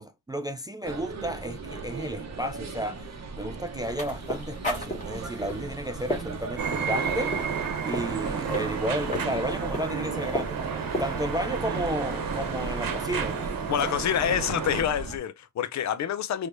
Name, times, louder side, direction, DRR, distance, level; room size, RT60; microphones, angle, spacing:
voice 1, 0.0-7.4 7.8-10.6 11.0-13.4, right 1 dB, 10° right, 0.3 m, -32 dB
sound 1, 0.8-15.2, right 4 dB, 50° right, 1.2 m, -38 dB
sound 2, 3.8-11.4, left 1 dB, 20° left, 1.9 m, -37 dB
sound 3, 6.6-14.8, right 6 dB, 80° right, 1.2 m, -32 dB
voice 2, 13.7-16.5, left 9 dB, 55° left, 0.5 m, -27 dB
4.6 x 3.3 x 2.6 m
wide cardioid pair, 145°, 33 cm